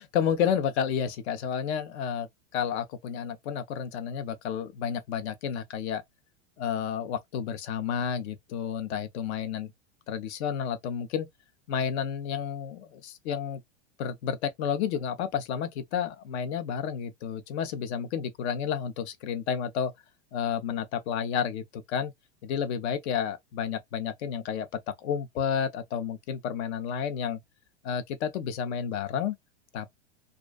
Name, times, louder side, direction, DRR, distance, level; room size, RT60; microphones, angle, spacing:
voice 1, 0.0-2.3 2.5-6.0 6.6-9.7 10.1-11.3 11.7-13.6 14.0-19.9 20.3-22.1 22.4-27.4 27.8-29.4 29.7-29.9, left 8 dB, 65° left, 0.7 m, -31 dB
2.4 x 2.2 x 2.3 m
supercardioid pair, 125°, 36 cm